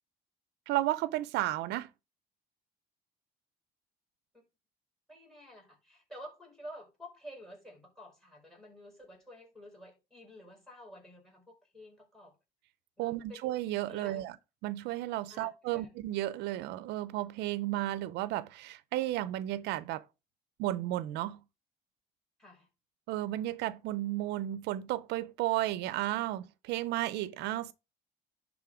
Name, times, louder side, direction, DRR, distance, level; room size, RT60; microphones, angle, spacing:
voice 1, 0.7-1.9 13.0-14.4 14.6-20.0 20.6-21.4 23.1-27.7, right 15 dB, 85° right, 0.5 m, -33 dB
voice 2, 5.1-12.4 13.0-13.4 13.9-14.3 15.3-15.9 22.4-22.7, equal, 5° left, 5.2 m, -51 dB
10.5 x 3.7 x 4.9 m
cardioid pair, 110°, 17 cm